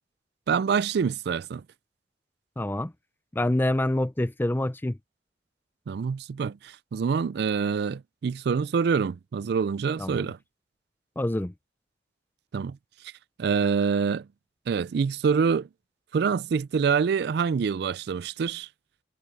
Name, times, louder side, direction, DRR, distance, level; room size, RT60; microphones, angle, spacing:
voice 1, 0.5-1.6 5.9-10.4 12.5-12.8 13.4-14.3 14.7-15.7 16.1-18.7, right 6 dB, 65° right, 0.4 m, -26 dB
voice 2, 2.6-2.9 3.3-5.0 10.0-10.3 11.2-11.5, left 1 dB, 10° left, 0.5 m, -26 dB
head